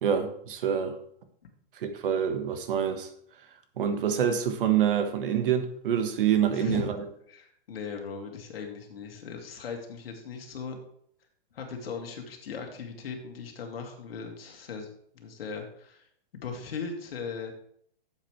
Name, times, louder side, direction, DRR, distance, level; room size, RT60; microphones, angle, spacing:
voice 1, 0.0-1.0 1.8-3.1 3.8-7.0, right 8 dB, 60° right, 1.4 m, -26 dB
voice 2, 6.5-6.9 7.3-10.8 11.5-14.9 15.1-16.1 16.3-17.5, left 5 dB, 80° left, 2.3 m, -38 dB
11.5 x 7.5 x 3.2 m
hypercardioid pair, 165°, 29 cm